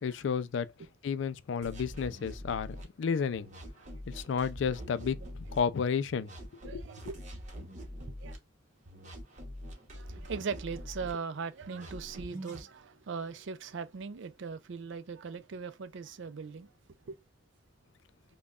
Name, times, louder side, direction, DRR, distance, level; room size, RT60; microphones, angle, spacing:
voice 1, 0.0-0.7 1.0-3.5 4.1-6.3 6.7-6.8, left 6 dB, 65° left, 0.3 m, -32 dB
sound 1, 1.6-2.8 3.3-5.6 6.1-8.4 8.8-11.1 11.6-12.6, equal, 40° right, 1.1 m, -44 dB
voice 2, 6.6-7.2 8.2-8.4 9.9-16.7 17.1-17.2, right 5 dB, 65° right, 0.4 m, -39 dB
5.2 x 2.2 x 2.4 m
head